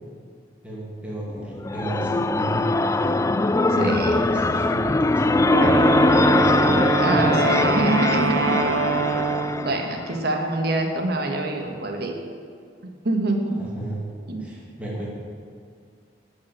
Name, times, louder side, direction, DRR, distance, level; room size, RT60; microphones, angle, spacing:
voice 1, 0.6-3.2 3.6-5.7 6.2-7.3 13.6-14.0 14.4-15.1, right 1 dB, 5° right, -6 dB, 2.2 m, -32 dB
sound 1, 1.4-10.2, left 2 dB, 15° left, 0.3 m, -22 dB
voice 2, 3.8-4.1 7.0-8.6 8.8-9.1 9.6-12.1 12.8-13.5 14.3-14.4, right 2 dB, 65° right, 3 dB, 1.5 m, -25 dB
Wind instrument woodwind instrument, 5.5-9.8, right 4 dB, 85° right, 1.0 m, -24 dB
12.5 x 6.2 x 7.5 m, 2.2 s
head